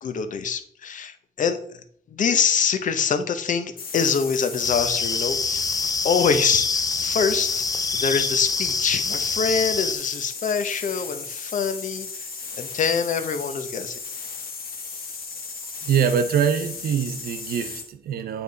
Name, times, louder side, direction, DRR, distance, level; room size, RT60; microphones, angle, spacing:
voice 1, 0.0-1.6 2.1-5.7 6.0-7.5 7.9-12.1 12.6-14.0, left 6 dB, 60° left, 0.7 m, -24 dB
sound 1, 3.8-17.9, left 4 dB, 75° left, 1.4 m, -36 dB
sound 2, 4.6-9.9, left 4 dB, 25° left, 0.4 m, -25 dB
voice 2, 15.8-18.4, right 7 dB, 85° right, 0.6 m, -24 dB
8.8 x 3.4 x 3.9 m
cardioid pair, 115°, 15 cm